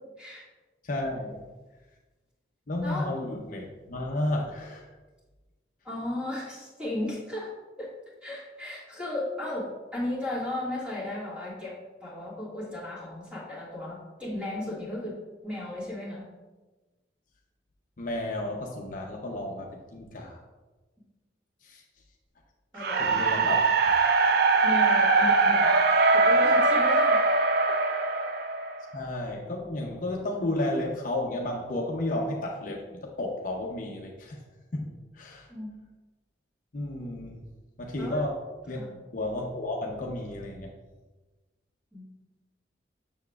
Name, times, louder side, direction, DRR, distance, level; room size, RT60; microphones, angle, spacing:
voice 1, 0.8-1.4 2.7-4.9 18.0-20.4 21.6-21.8 22.7-23.9 24.3-24.4 28.9-34.4 34.7-35.5 36.7-37.5 37.8-38.4 38.7-38.8 39.1-40.7, left 1 dB, 45° left, 0 dB, 0.6 m, -32 dB
voice 2, 2.8-3.1 5.8-7.5 7.8-7.9 8.2-16.3 22.7-23.3 24.6-25.7 26.1-27.2 35.5-35.7 38.0-38.2 38.7-39.0 41.9-42.1, left 1 dB, 5° right, -6 dB, 1.9 m, -35 dB
sound 1, 22.8-28.9, right 3 dB, 55° right, 0.4 m, -22 dB
7.0 x 6.7 x 2.3 m, 1.2 s
head